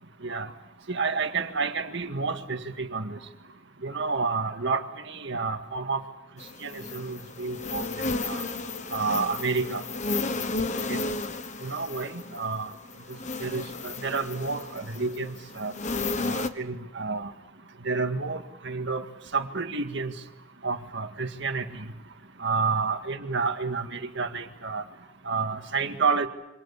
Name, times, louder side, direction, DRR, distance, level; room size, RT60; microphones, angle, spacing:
voice 1, 0.9-3.2 3.8-6.0 6.6-7.8 8.2-8.4 8.9-9.8 10.9-11.0 11.6-12.7 13.4-15.7 16.2-17.3 17.8-19.0 19.3-20.1 20.6-21.8 22.4-24.8 25.3-26.3, right 4 dB, 60° right, 6 dB, 1.9 m, -29 dB
sound 1, 6.4-16.5, left 3 dB, 35° left, 1.3 m, -33 dB
27.0 x 25.0 x 7.2 m, 0.91 s
head